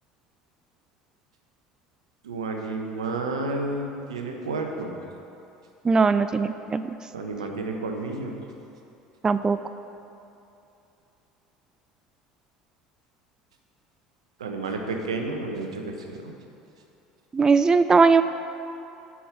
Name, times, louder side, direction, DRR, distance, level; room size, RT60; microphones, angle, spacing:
voice 1, 2.2-5.0 7.1-8.4 14.4-16.3, right 3 dB, 85° right, 3 dB, 1.0 m, -31 dB
voice 2, 5.8-6.8 9.2-9.6 17.3-18.2, right 4 dB, 20° right, 12 dB, 0.3 m, -19 dB
8.4 x 6.1 x 6.9 m, 2.7 s
hypercardioid pair, 75°, 3 cm